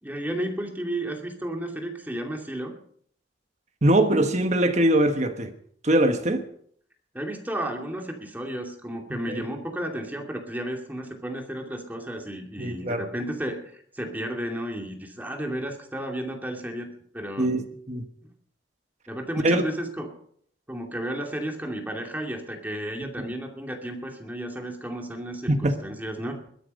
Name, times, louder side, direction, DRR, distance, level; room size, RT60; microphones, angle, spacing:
voice 1, 0.0-2.7 7.1-17.5 18.2-18.3 19.1-20.1 20.7-26.4, right 1 dB, 10° right, 2.5 m, -33 dB
voice 2, 3.8-5.5 5.8-6.4 9.3-9.4 12.6-13.0 17.4-18.0 19.4-19.6 23.2-23.3 25.5-25.7, right 1 dB, 40° right, 1.4 m, -22 dB
21.5 x 10.0 x 5.4 m
head